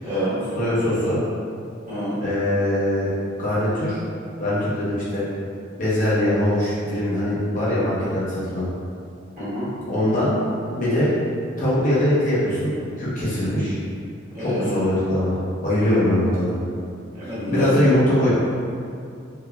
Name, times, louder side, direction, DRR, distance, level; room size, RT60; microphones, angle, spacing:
voice 1, 0.0-0.4 1.9-2.2 9.4-9.7 14.3-14.7 17.1-17.9, equal, 40° right, -13 dB, 1.4 m, -27 dB
voice 2, 0.5-1.2 2.2-3.1 3.4-4.0 4.4-5.2 5.8-8.6 9.9-10.3 10.8-11.1 11.6-12.7 13.0-13.8 14.4-16.6 17.5-18.3, left 1 dB, 40° left, -10 dB, 0.7 m, -22 dB
3.1 x 2.1 x 2.2 m, 2.4 s
head